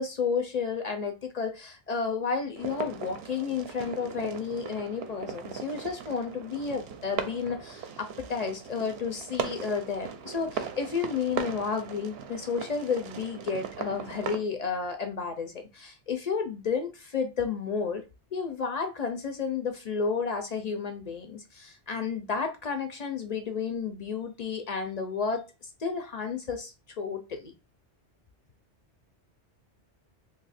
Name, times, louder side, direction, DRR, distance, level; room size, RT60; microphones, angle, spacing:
voice 1, 0.0-18.0 18.3-27.5, left 5 dB, 55° left, 0.5 m, -32 dB
sound 1, 2.6-14.4, right 7 dB, 65° right, 0.8 m, -38 dB
2.7 x 2.4 x 4.0 m
omnidirectional pair, 1.2 m